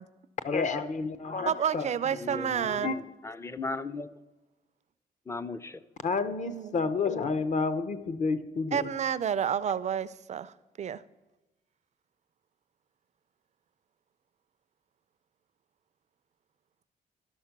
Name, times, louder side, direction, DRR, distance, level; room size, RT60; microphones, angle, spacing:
voice 1, 0.4-1.9 2.8-3.0 6.0-8.9, left 4 dB, 45° left, 13 dB, 0.8 m, -30 dB
voice 2, 1.5-2.9 6.5-6.9 8.7-11.0, right 8 dB, 45° right, 16 dB, 0.4 m, -30 dB
voice 3, 2.1-4.1 5.3-5.8, left 3 dB, 15° left, 16 dB, 0.5 m, -37 dB
12.0 x 6.3 x 5.9 m, 1.1 s
cardioid pair, 90°, 17 cm